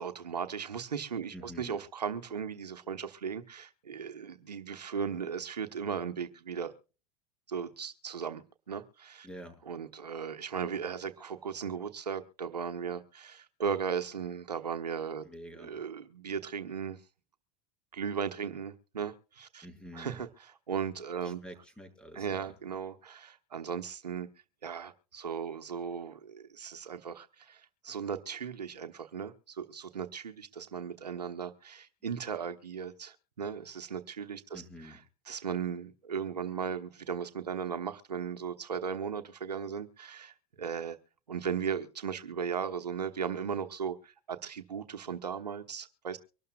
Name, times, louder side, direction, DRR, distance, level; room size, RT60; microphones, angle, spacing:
voice 1, 0.0-6.7 7.5-9.3 9.7-15.2 15.6-17.0 17.9-19.7 19.9-20.3 20.7-21.4 22.1-24.3 24.6-35.0 35.3-41.0 41.3-46.2, right 7 dB, 90° right, 7 dB, 1.1 m, -37 dB
voice 2, 1.3-1.8 9.2-9.6 15.2-15.7 19.6-20.2 21.2-22.6 34.5-35.0, equal, 5° left, 7 dB, 6.4 m, -48 dB
24.5 x 12.5 x 2.4 m, 0.35 s
hypercardioid pair, 80°, 20 cm